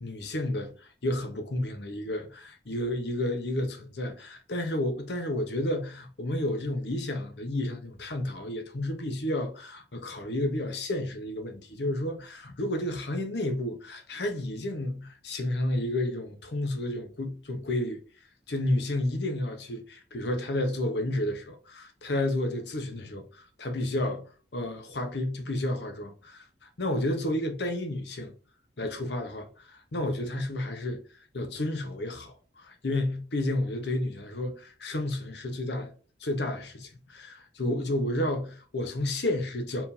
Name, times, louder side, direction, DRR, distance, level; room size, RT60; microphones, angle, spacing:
voice 1, 0.0-18.0 18.5-24.2 24.5-26.4 26.8-28.3 28.8-31.0 31.3-35.9 36.2-39.9, left 1 dB, 70° left, 0.9 m, -31 dB
4.6 x 3.8 x 2.7 m
head